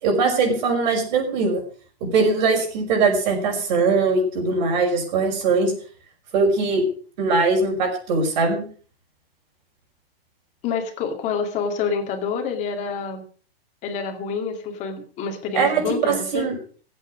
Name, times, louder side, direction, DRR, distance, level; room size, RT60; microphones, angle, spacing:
voice 1, 0.0-1.6 2.0-5.7 6.3-6.8 7.2-8.7 15.5-16.6, right 4 dB, 45° right, 2 dB, 5.6 m, -21 dB
voice 2, 10.6-13.3 13.8-16.5, left 5 dB, 25° left, 4 dB, 2.3 m, -27 dB
15.0 x 8.8 x 6.3 m, 0.42 s
hypercardioid pair, 165°, 31 cm